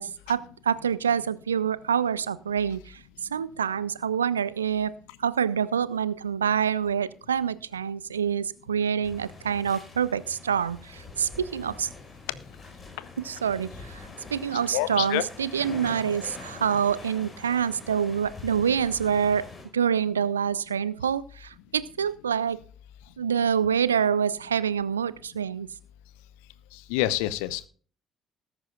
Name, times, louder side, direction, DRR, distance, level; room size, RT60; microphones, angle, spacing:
voice 1, 0.0-3.0 3.3-4.9 5.2-11.9 13.2-14.0 14.3-19.5 19.7-22.6 23.2-25.7, right 8 dB, 80° right, 19 dB, 0.5 m, -26 dB
sound 1, 9.0-19.6, left 3 dB, 35° left, 5.7 m, -44 dB
voice 2, 14.7-15.2 26.9-27.7, left 16 dB, 65° left, 17 dB, 0.7 m, -26 dB
19.0 x 9.8 x 2.4 m, 0.42 s
figure-of-eight pair, 50°, 0 cm